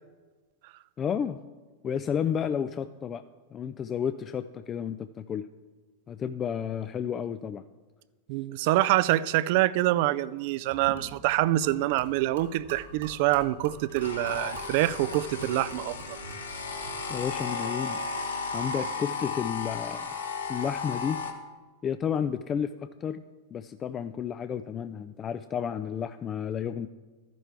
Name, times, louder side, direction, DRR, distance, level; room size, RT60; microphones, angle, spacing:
voice 1, 1.0-1.4 1.8-3.2 3.5-5.5 6.1-7.6 17.1-18.0 18.5-20.1 20.5-21.2 21.8-23.2 23.5-26.9, left 8 dB, 30° left, 0.4 m, -31 dB
voice 2, 8.3-16.0, right 16 dB, 55° right, 0.4 m, -26 dB
Gurgling / Liquid, 10.7-17.5, right 3 dB, 75° right, 2.4 m, -46 dB
sound 1, 14.0-21.3, left 4 dB, 85° left, 1.2 m, -34 dB
13.0 x 10.5 x 3.4 m
hypercardioid pair, 100°, 0 cm